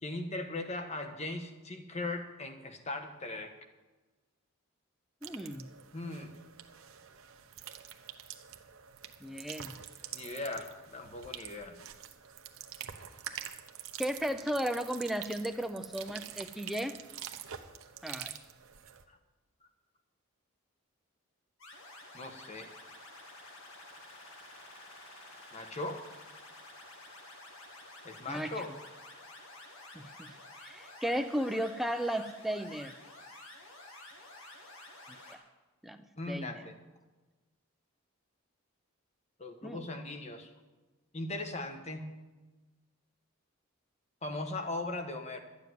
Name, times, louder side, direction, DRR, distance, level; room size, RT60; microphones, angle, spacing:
voice 1, 0.0-3.5 5.9-6.3 10.1-11.8 19.1-19.2 22.1-22.7 25.5-26.0 28.0-28.7 36.2-36.7 39.4-40.5 41.1-42.1 44.2-45.4, left 2 dB, 30° left, 5 dB, 1.3 m, -39 dB
voice 2, 5.2-5.7 9.2-9.8 14.0-16.9 18.0-18.4 28.3-28.5 29.9-30.3 30.6-32.9 35.3-35.4 35.8-36.5 39.6-39.8, equal, ahead, 8 dB, 0.5 m, -35 dB
sound 1, 5.2-19.0, right 9 dB, 75° right, 0.9 m, -46 dB
sound 2, 21.6-35.4, left 2 dB, 70° left, 2.3 m, -51 dB
12.0 x 6.9 x 9.4 m, 1.2 s
head